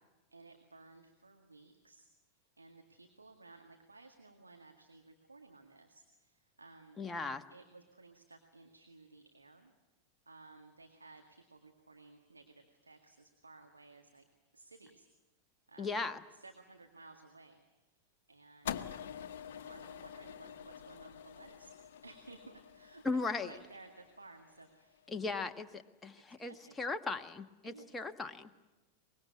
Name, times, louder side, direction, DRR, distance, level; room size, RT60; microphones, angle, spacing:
voice 1, 0.3-7.0 7.5-9.7 10.3-14.2 14.5-15.1 15.7-16.1 16.3-18.0 18.3-18.9 19.5-21.7 22.0-25.5 26.4-26.8 27.6-27.9 28.4-28.5, right 3 dB, 80° right, 4 dB, 1.9 m, -57 dB
voice 2, 7.0-7.4 15.8-16.2 23.0-23.5 25.1-28.5, left 3 dB, 10° left, 6 dB, 1.3 m, -37 dB
sound 1, 18.7-25.0, left 9 dB, 55° left, 1.1 m, -46 dB
24.5 x 22.0 x 9.6 m, 1.1 s
figure-of-eight pair, 90°, 0 cm